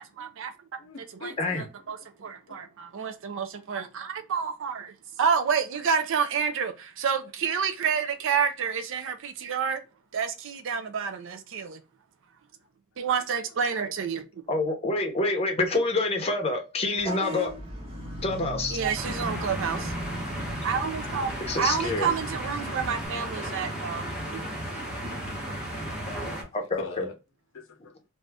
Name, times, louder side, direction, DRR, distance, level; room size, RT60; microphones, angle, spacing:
voice 1, 0.0-0.5 1.2-1.3 1.9-4.9 5.2-9.8 10.1-11.8 13.0-14.4 18.7-19.9 20.6-21.3 21.6-24.4 24.7-24.9, right 6 dB, 60° right, 0.5 m, -29 dB
voice 2, 0.8-1.6 2.2-2.6 13.5-13.6 18.0-18.5 21.4-21.6 26.8-27.1 27.5-28.0, left 4 dB, 65° left, 0.7 m, -45 dB
voice 3, 14.5-17.5 18.2-18.8 21.5-22.1 23.3-23.4 26.1-26.2 26.5-27.1, left 2 dB, 30° left, 0.7 m, -27 dB
Vehicle horn car horn honking / Bus, 17.0-23.1, right 1 dB, 30° right, 0.9 m, -38 dB
sound 1, 19.0-26.4, equal, 5° right, 0.9 m, -34 dB
2.6 x 2.3 x 3.3 m
head